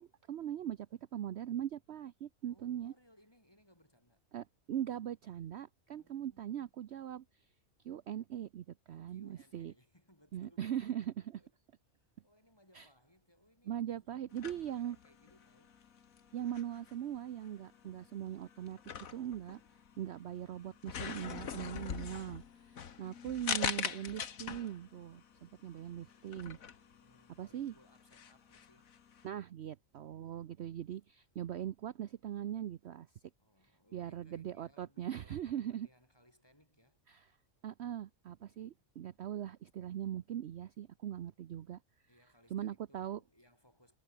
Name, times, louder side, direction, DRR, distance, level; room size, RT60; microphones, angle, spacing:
voice 1, 0.0-2.9 4.3-7.2 7.8-9.7 10.3-11.1 12.7-12.9 13.7-15.0 16.3-18.8 19.1-19.6 20.0-26.6 27.4-27.7 29.2-33.1 33.9-35.9 37.1-37.3 37.6-41.8 42.5-43.2, right 10 dB, 60° right, 0.9 m, -40 dB
voice 2, 2.5-4.3 5.9-6.7 8.9-11.6 11.9-15.9 26.9-29.0 33.4-37.0 38.4-38.8 42.1-44.0, equal, 15° left, 7.5 m, -67 dB
sound 1, 14.3-29.3, left 7 dB, 80° left, 1.8 m, -43 dB
omnidirectional pair, 1.4 m